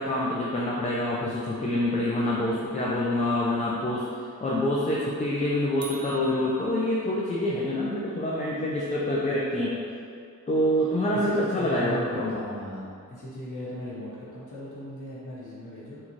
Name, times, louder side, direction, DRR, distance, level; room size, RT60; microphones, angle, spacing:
voice 1, 0.0-4.1 4.4-9.7 10.5-12.4, left 1 dB, 20° left, -5 dB, 0.4 m, -26 dB
sound 1, 5.8-7.4, right 4 dB, 50° right, 0.4 m, -45 dB
voice 2, 11.1-16.0, left 1 dB, 65° left, -8 dB, 1.1 m, -37 dB
4.0 x 2.3 x 3.0 m, 2.3 s
wide cardioid pair, 95°, 33 cm